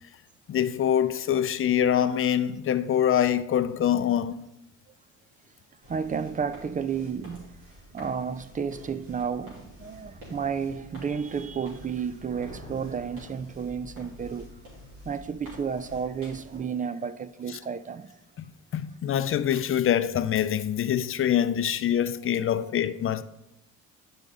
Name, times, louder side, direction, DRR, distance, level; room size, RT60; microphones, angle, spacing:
voice 1, 0.5-4.5 18.7-23.2, left 10 dB, 45° left, 0.5 m, -24 dB
sound 1, 5.8-16.6, equal, 90° right, 3.3 m, -49 dB
voice 2, 5.9-7.5 7.9-14.5 15.0-18.2 22.6-22.7, right 6 dB, 25° right, 0.4 m, -32 dB
Thunder, 12.0-14.2, equal, 45° right, 2.3 m, -48 dB
10.5 x 5.3 x 3.6 m
cardioid pair, 90°, 30 cm